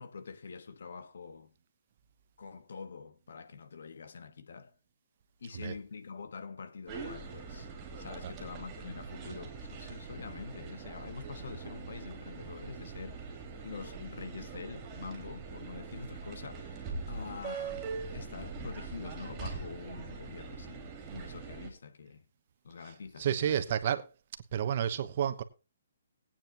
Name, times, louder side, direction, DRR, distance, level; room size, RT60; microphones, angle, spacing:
voice 1, 0.0-1.5 2.4-4.8 5.4-7.7 8.0-17.8 18.1-22.2 22.6-23.6, left 5 dB, 70° left, 1.4 m, -45 dB
sound 1, 6.9-21.7, right 4 dB, 15° right, 3.0 m, -42 dB
voice 2, 23.2-24.0 24.5-25.4, right 9 dB, 40° right, 1.1 m, -30 dB
19.5 x 9.0 x 3.0 m
hypercardioid pair, 165°, 0 cm